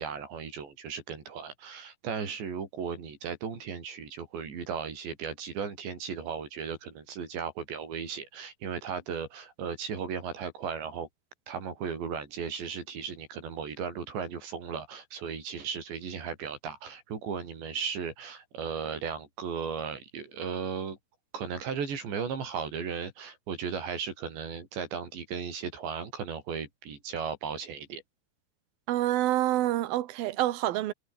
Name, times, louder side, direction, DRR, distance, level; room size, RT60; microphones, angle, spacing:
voice 1, 0.0-11.1 11.5-21.0 21.3-28.0, right 6 dB, 90° right, 7.3 m, -36 dB
voice 2, 28.9-30.9, right 14 dB, 65° right, 2.9 m, -27 dB
omnidirectional pair, 4.9 m